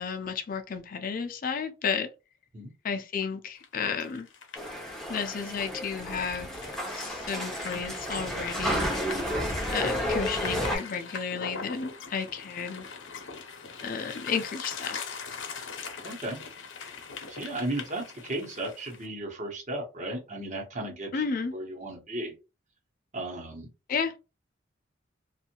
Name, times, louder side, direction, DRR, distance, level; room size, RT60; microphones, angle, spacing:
voice 1, 0.0-2.1 2.8-4.3 5.1-6.5 6.9-8.8 9.7-12.8 13.8-15.0 21.1-21.5 23.9-24.1, left 6 dB, 45° left, 0.4 m, -32 dB
sound 1, 3.6-19.1, left 5 dB, 85° left, 0.7 m, -42 dB
sound 2, 4.5-10.8, equal, ahead, 0.6 m, -31 dB
voice 2, 16.0-16.4 17.3-21.2 21.5-22.3 23.1-23.7, right 1 dB, 40° right, 1.0 m, -35 dB
2.6 x 2.4 x 2.8 m
head